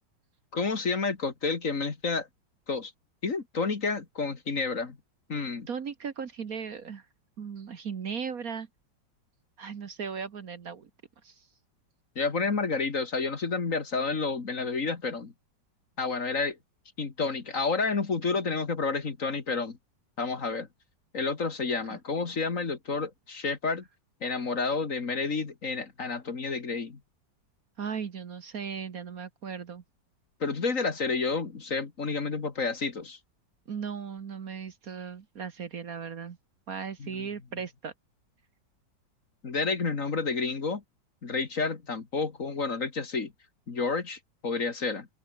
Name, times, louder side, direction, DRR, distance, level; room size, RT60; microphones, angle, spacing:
voice 1, 0.5-2.3 2.7-2.9 3.2-5.0 5.3-5.7 12.2-15.3 16.0-16.6 17.0-19.8 20.2-20.7 21.1-23.8 24.2-27.0 30.4-33.2 37.0-37.3 39.4-40.8 41.2-43.3 43.7-45.1, left 4 dB, 45° left, 2.3 m, -30 dB
voice 2, 5.7-7.0 7.4-8.7 9.6-10.9 11.2-11.3 21.9-22.0 27.8-29.8 33.7-36.4 36.7-37.9, right 6 dB, 55° right, 1.7 m, -37 dB
omnidirectional pair, 2.0 m